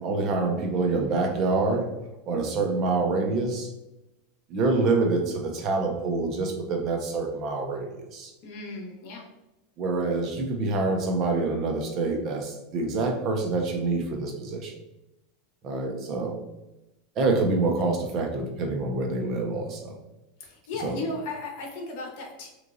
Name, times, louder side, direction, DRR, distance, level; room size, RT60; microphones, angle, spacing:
voice 1, 0.0-1.9 2.3-3.7 4.5-8.3 9.8-14.7 15.6-16.4 17.2-20.0 20.8-21.0, right 3 dB, 35° right, 3 dB, 0.5 m, -26 dB
voice 2, 8.4-9.2 20.4-22.5, left 3 dB, 55° left, 0 dB, 1.0 m, -35 dB
3.6 x 3.0 x 2.5 m, 0.94 s
supercardioid pair, 165°, 0 cm